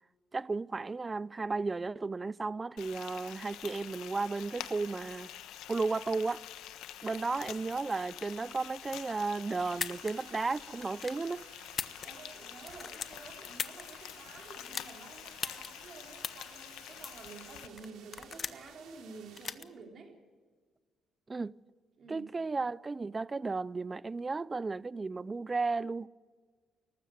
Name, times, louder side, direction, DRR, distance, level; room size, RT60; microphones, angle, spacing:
voice 1, 0.3-5.3 5.7-6.4 7.0-11.4 21.3-21.6 22.1-26.1, right 3 dB, 25° right, 0.5 m, -34 dB
Frying (food), 2.8-17.7, left 12 dB, 90° left, 1.1 m, -47 dB
sound 1, 9.6-19.5, right 7 dB, 85° right, 3.3 m, -57 dB
sound 2, 9.8-10.1 10.8-11.2 11.7-12.4 12.6-13.8 14.6-14.9 15.4-15.7 16.2-16.5 17.0-17.3 17.8-18.7 19.4-19.6, left 6 dB, 45° left, 1.0 m, -38 dB
voice 2, 12.0-20.2 22.0-22.3, right 4 dB, 55° right, 4.2 m, -50 dB
19.0 x 14.5 x 9.3 m
cardioid pair, 90°, 0 cm